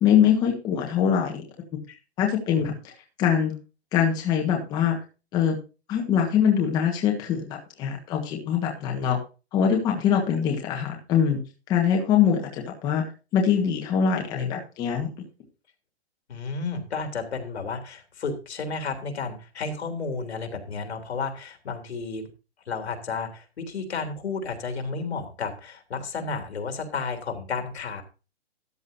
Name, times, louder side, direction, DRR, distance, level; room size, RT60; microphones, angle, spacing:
voice 1, 0.0-1.4 2.2-2.7 3.2-3.5 3.9-5.0 5.3-5.6 5.9-9.2 9.5-11.4 11.7-13.0 13.3-15.1, left 8 dB, 10° left, 1 dB, 1.5 m, -23 dB
voice 2, 16.3-22.3 22.7-28.0, left 4 dB, 80° left, 5 dB, 3.4 m, -32 dB
13.5 x 10.5 x 2.7 m, 0.31 s
hypercardioid pair, 175°, 32 cm